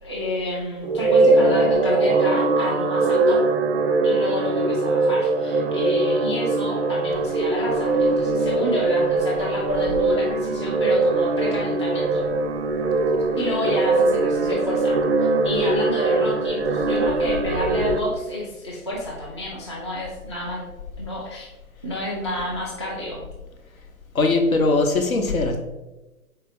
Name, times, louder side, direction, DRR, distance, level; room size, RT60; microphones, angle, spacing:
voice 1, 0.0-3.4 4.0-12.3 13.4-20.7 21.0-21.5 21.8-23.3, left 1 dB, 20° left, -5 dB, 0.4 m, -29 dB
sound 1, 0.8-18.0, right 3 dB, 45° right, 0.5 m, -21 dB
voice 2, 24.1-25.6, left 3 dB, 65° left, 4 dB, 0.9 m, -20 dB
4.3 x 3.3 x 3.6 m, 1.1 s
figure-of-eight pair, 125°, 45 cm